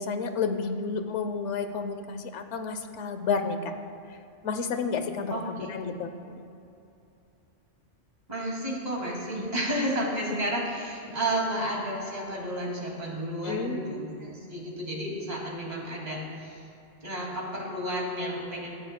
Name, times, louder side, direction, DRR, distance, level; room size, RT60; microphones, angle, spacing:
voice 1, 0.0-3.7 4.4-6.5 9.4-9.5 11.1-11.2 13.4-13.8, left 5 dB, 90° left, 8 dB, 1.1 m, -31 dB
voice 2, 5.3-5.7 8.3-16.7 17.0-18.7, right 1 dB, 35° right, -3 dB, 2.5 m, -32 dB
17.5 x 13.0 x 2.2 m, 2.7 s
omnidirectional pair, 1.2 m